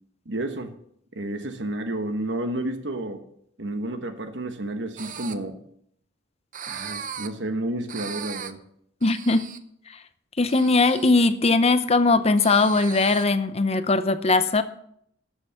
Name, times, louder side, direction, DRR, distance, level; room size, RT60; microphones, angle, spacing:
voice 1, 0.2-0.8 1.1-3.2 3.6-5.6 6.7-8.6, right 1 dB, 70° right, 7 dB, 1.2 m, -31 dB
sound 1, 5.0-5.3 6.5-7.3 7.9-8.5 9.0-9.6 10.4-11.1 12.4-13.2, right 8 dB, 45° right, 0.7 m, -37 dB
voice 2, 9.0-9.5 10.4-14.6, left 3 dB, 35° left, 12 dB, 0.7 m, -20 dB
13.0 x 6.5 x 5.8 m, 0.68 s
head